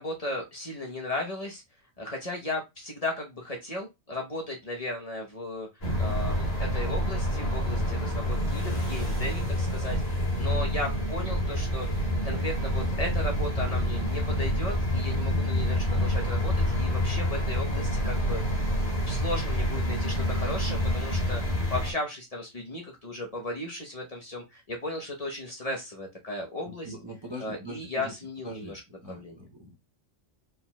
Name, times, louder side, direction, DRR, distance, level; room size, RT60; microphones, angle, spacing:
voice 1, 0.0-1.6 2.0-5.7 6.0-10.0 10.4-18.7 19.1-26.9 27.4-28.8 29.1-29.4, left 2 dB, 35° left, 1.0 m, -35 dB
sound 1, 5.8-21.9, equal, 60° left, 2.1 m, -27 dB
voice 2, 26.8-28.1 28.4-29.8, equal, 30° right, 0.6 m, -43 dB
4.8 x 3.8 x 2.2 m
omnidirectional pair, 1.2 m